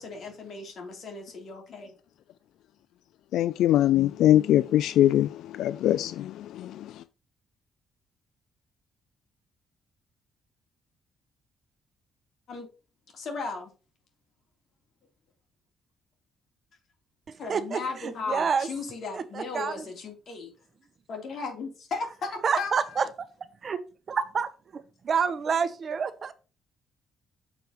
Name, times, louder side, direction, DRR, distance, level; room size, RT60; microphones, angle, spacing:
voice 1, 0.0-1.9 12.5-12.7 13.1-13.7 17.4-20.5 21.1-22.7, left 4 dB, 60° left, 3.3 m, -36 dB
voice 2, 3.3-6.9, left 12 dB, 85° left, 0.3 m, -22 dB
voice 3, 17.3-18.7 19.1-19.8 22.4-23.1 23.6-23.8 24.1-26.3, right 6 dB, 50° right, 0.9 m, -28 dB
6.8 x 4.6 x 5.7 m
cardioid pair, 90°, 0 cm